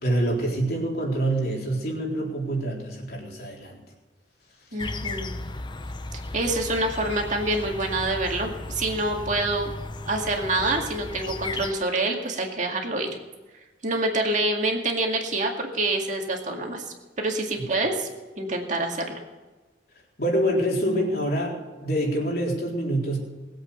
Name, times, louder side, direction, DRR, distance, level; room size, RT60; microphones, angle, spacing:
voice 1, 0.0-3.8 17.6-17.7 20.2-23.2, right 1 dB, 55° left, -2 dB, 4.0 m, -26 dB
voice 2, 4.7-5.3 6.3-9.7 10.1-13.1 13.8-18.1 18.4-19.0, right 2 dB, 40° right, 1 dB, 2.2 m, -26 dB
sound 1, 4.8-11.7, left 2 dB, 25° left, 0.6 m, -35 dB
20.5 x 8.2 x 6.8 m, 1.2 s
head